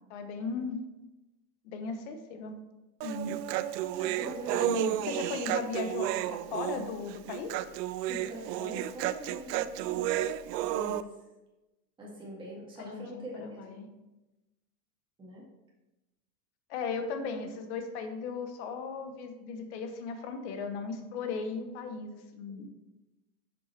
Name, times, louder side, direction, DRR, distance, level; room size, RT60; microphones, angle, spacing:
voice 1, 0.1-0.8 1.6-2.6 3.0-3.4 4.6-7.6 12.8-13.9 16.7-22.7, left 4 dB, 45° left, 7 dB, 1.1 m, -37 dB
Human voice, 3.0-11.0, right 13 dB, 85° right, 0.6 m, -32 dB
voice 2, 4.0-4.8 5.1-5.6 8.0-10.1 10.7-11.1 12.0-13.8 15.2-15.5, equal, 10° right, -5 dB, 1.7 m, -43 dB
9.0 x 7.0 x 3.3 m, 1.0 s
supercardioid pair, 175°, 48 cm